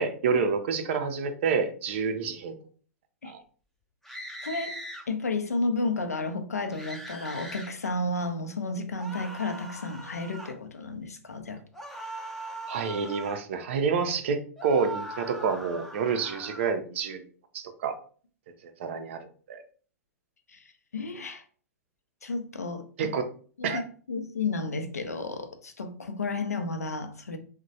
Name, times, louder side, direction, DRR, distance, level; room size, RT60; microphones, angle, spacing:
voice 1, 0.0-2.5 3.2-3.4 12.7-17.2 17.5-18.0 18.6-19.6 23.0-23.3 23.6-23.8, right 5 dB, 50° right, 0.4 m, -28 dB
sound 1, 4.0-5.0 6.7-7.7 9.0-10.6 11.7-13.4 14.6-16.7, right 1 dB, ahead, 0.5 m, -40 dB
voice 2, 4.4-4.7 5.1-11.6 20.5-21.4 22.2-23.1 23.6-23.8 24.1-27.4, left 3 dB, 75° left, 0.5 m, -32 dB
2.9 x 2.1 x 2.6 m
figure-of-eight pair, 100°, 8 cm